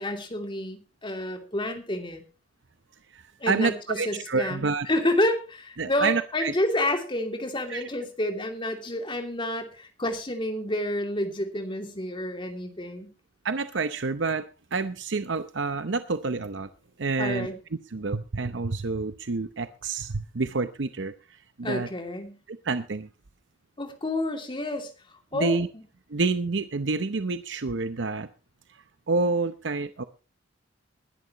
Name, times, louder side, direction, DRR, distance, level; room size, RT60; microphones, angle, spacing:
voice 1, 0.0-2.2 3.4-13.1 17.2-17.6 21.6-22.4 23.8-24.9 25.3-25.6, left 1 dB, 25° left, 5 dB, 2.7 m, -29 dB
voice 2, 3.1-4.9 5.8-6.5 7.7-7.8 13.4-16.7 17.0-17.5 17.9-21.9 22.5-23.1 25.4-25.7 26.1-28.3 28.7-30.0, right 3 dB, 70° right, 10 dB, 0.8 m, -28 dB
21.0 x 11.0 x 3.0 m, 0.32 s
head